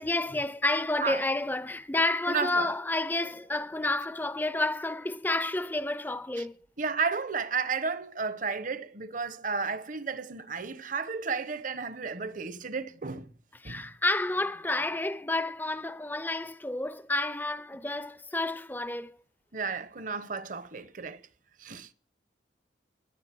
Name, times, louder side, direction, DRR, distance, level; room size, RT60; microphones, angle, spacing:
voice 1, 0.0-6.6 13.6-19.1, left 2 dB, 10° left, 0.6 m, -30 dB
voice 2, 2.3-2.7 6.4-6.5 6.8-13.3 13.6-13.8 19.5-21.2 21.6-21.9, right 5 dB, 45° right, 1.0 m, -33 dB
14.5 x 10.5 x 7.6 m
head